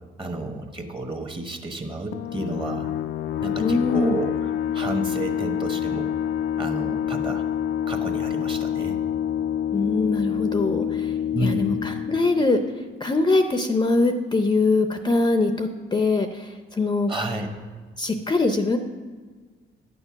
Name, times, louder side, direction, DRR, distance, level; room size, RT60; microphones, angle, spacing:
voice 1, 0.2-2.9 3.4-6.1 6.6-7.4 7.9-9.0 11.3-11.8 17.1-17.5, right 2 dB, 25° right, 4 dB, 1.3 m, -31 dB
sound 1, 2.1-13.4, left 10 dB, 75° left, 0.4 m, -27 dB
voice 2, 3.6-4.2 9.7-11.1 11.4-12.6 13.0-17.1 18.0-18.8, left 3 dB, 20° left, 7 dB, 0.6 m, -22 dB
10.0 x 6.8 x 5.8 m, 1.5 s
cardioid pair, 90°, 20 cm